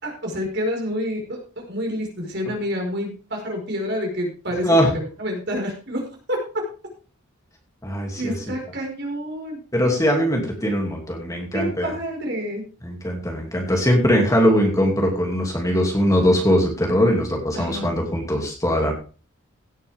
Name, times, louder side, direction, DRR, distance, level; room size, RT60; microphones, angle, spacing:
voice 1, 0.0-6.0 6.3-6.4 8.2-9.6 11.5-12.6 17.6-17.9, equal, 55° right, 1 dB, 5.1 m, -28 dB
voice 2, 4.6-4.9 7.8-8.3 9.7-11.9 12.8-18.9, equal, 15° left, 0 dB, 2.7 m, -21 dB
17.0 x 9.2 x 3.6 m, 0.37 s
head